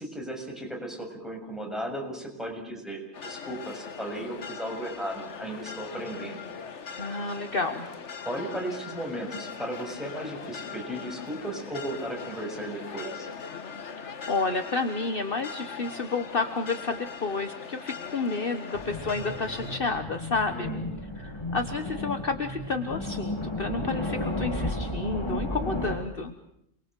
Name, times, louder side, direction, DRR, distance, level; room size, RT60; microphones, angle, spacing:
voice 1, 0.0-6.4 8.2-13.3 20.5-20.8, right 1 dB, ahead, 1 dB, 7.0 m, -35 dB
sound 1, 3.1-19.8, left 6 dB, 65° left, 1.6 m, -40 dB
voice 2, 7.0-7.9 14.0-20.7 21.2-26.3, left 3 dB, 45° left, 7 dB, 1.5 m, -30 dB
sound 2, 18.7-26.0, left 1 dB, 20° left, 2.8 m, -33 dB
28.5 x 22.0 x 7.6 m, 0.78 s
omnidirectional pair, 1.3 m